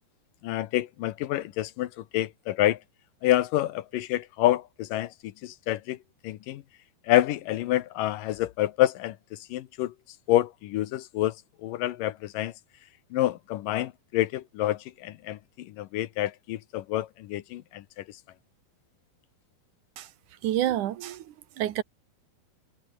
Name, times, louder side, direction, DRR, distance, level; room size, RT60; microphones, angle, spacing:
voice 1, 0.4-2.8 3.2-6.0 6.2-6.6 7.1-9.9 10.3-11.3 11.6-12.5 13.1-18.2, left 14 dB, 70° left, 2.2 m, -28 dB
voice 2, 20.4-21.8, right 12 dB, 65° right, 2.4 m, -29 dB
omnidirectional pair, 4.6 m